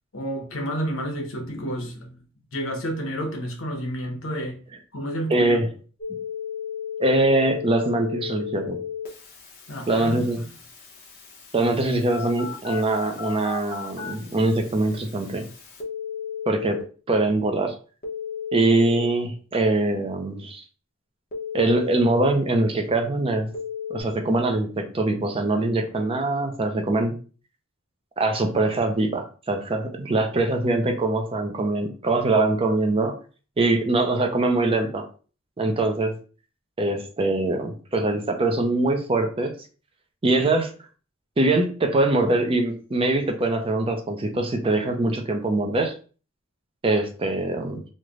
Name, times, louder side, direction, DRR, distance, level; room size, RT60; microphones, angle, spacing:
voice 1, 0.1-2.2 2.5-4.6 4.9-5.6 9.7-10.3, equal, 70° left, 0.9 m, -30 dB
voice 2, 5.3-5.7 7.0-8.8 9.9-10.4 11.5-15.5 16.5-16.8 17.1-17.7 18.5-20.6 21.5-23.5 23.9-27.1 28.2-33.2 33.6-35.1 35.6-36.2 36.8-39.5 40.2-40.7 41.4-45.9 46.8-47.8, right 2 dB, 25° right, 0.5 m, -23 dB
Telephone, 6.0-16.8 18.0-19.0 21.3-22.3 23.5-24.0, left 7 dB, 45° left, 0.9 m, -35 dB
3.2 x 2.1 x 3.7 m
head